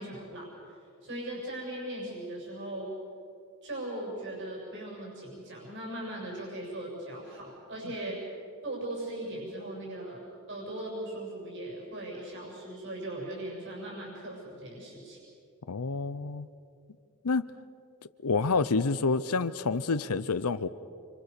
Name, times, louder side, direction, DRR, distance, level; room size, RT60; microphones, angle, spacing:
voice 1, 0.0-3.0 3.6-8.2 8.6-15.2, right 1 dB, 55° right, -2 dB, 7.5 m, -39 dB
voice 2, 15.7-16.5 17.2-17.5 18.2-20.7, left 4 dB, 90° left, 13 dB, 0.7 m, -28 dB
29.5 x 25.5 x 6.9 m, 2.5 s
head